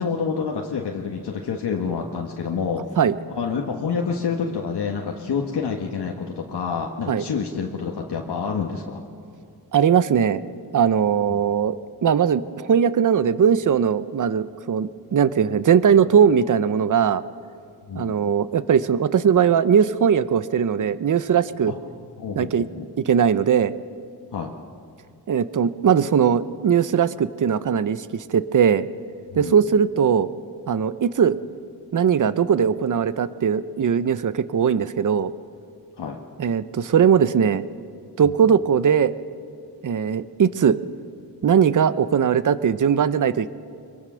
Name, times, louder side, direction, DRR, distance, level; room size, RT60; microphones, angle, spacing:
voice 1, 0.0-2.9 3.3-9.0 17.9-18.1 22.2-22.9 24.3-24.5 29.3-29.6 36.0-36.2 38.2-38.3, left 5 dB, 75° left, 0 dB, 1.6 m, -28 dB
voice 2, 9.7-10.4 10.7-11.8 12.0-17.2 17.9-21.7 22.4-22.6 23.0-23.7 25.3-28.9 29.3-30.3 30.7-31.4 31.9-35.3 36.4-37.6 38.2-39.1 39.8-40.8 41.4-43.5, right 7 dB, 50° right, 15 dB, 0.7 m, -19 dB
24.0 x 22.5 x 6.3 m, 2.4 s
cardioid pair, 80°, 40 cm